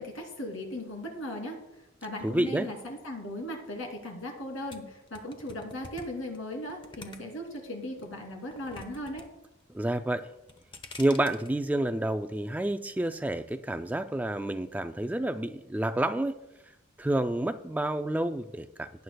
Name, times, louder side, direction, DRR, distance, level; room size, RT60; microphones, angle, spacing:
voice 1, 0.0-1.6 2.0-9.3, left 1 dB, 80° left, 2 dB, 2.7 m, -38 dB
voice 2, 2.2-2.7 9.7-10.3 11.0-16.3 17.0-19.0, right 1 dB, 10° right, 9 dB, 0.3 m, -29 dB
sound 1, 4.7-7.6 8.0-9.3 9.5-10.0 10.4-11.5, left 2 dB, 25° left, 0.9 m, -47 dB
17.5 x 9.4 x 2.3 m, 0.90 s
head